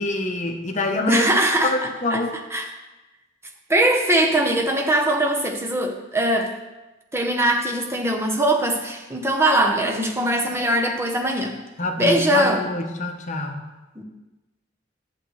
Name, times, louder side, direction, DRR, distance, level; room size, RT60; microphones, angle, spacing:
voice 1, 0.0-1.2 1.6-2.3 11.8-13.6, left 2 dB, 40° left, 4 dB, 0.9 m, -25 dB
voice 2, 1.1-1.7 2.1-2.2 2.5-2.7 3.7-6.5 7.1-11.6 12.0-12.7 14.0-14.1, right 1 dB, 15° right, 2 dB, 0.9 m, -21 dB
10.5 x 7.7 x 3.3 m, 1.1 s
head